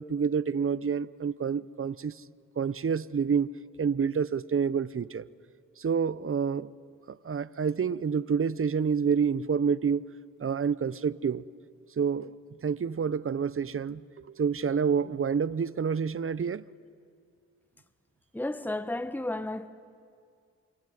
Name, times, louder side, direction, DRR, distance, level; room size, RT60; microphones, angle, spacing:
voice 1, 0.0-2.2 2.6-3.5 3.8-5.3 5.8-6.7 7.1-10.1 10.4-11.4 12.0-12.4 12.6-16.6, right 6 dB, 45° right, 0.7 m, -28 dB
voice 2, 18.3-19.7, left 1 dB, 5° left, 1.1 m, -32 dB
26.0 x 23.0 x 9.4 m
cardioid pair, 50°, 32 cm